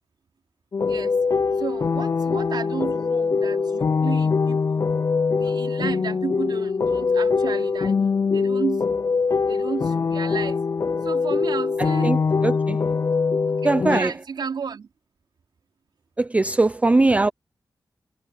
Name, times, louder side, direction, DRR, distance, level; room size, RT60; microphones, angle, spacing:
sound 1, 0.7-14.0, left 5 dB, 40° left, 0.4 m, -23 dB
voice 1, 1.6-4.9 5.4-8.0 8.3-8.9 9.5-10.6 11.0-12.2 13.5-14.9, right 6 dB, 75° right, 4.2 m, -32 dB
voice 2, 12.0-12.8 13.6-14.1 16.2-17.3, right 2 dB, 20° right, 0.4 m, -20 dB
wide cardioid pair, 120°, 7 cm